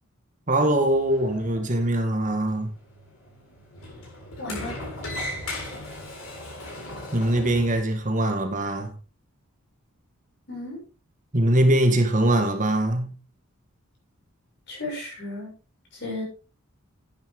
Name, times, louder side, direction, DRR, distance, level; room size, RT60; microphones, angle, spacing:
voice 1, 0.5-2.7 7.1-8.9 11.3-13.1, right 1 dB, 35° right, 1.8 m, -22 dB
Sliding door, 0.8-7.8, left 1 dB, 75° left, 7.2 m, -38 dB
voice 2, 4.4-4.7 10.5-10.8 14.7-15.5 15.9-16.2, left 2 dB, 50° left, 7.3 m, -34 dB
11.0 x 10.0 x 3.8 m
head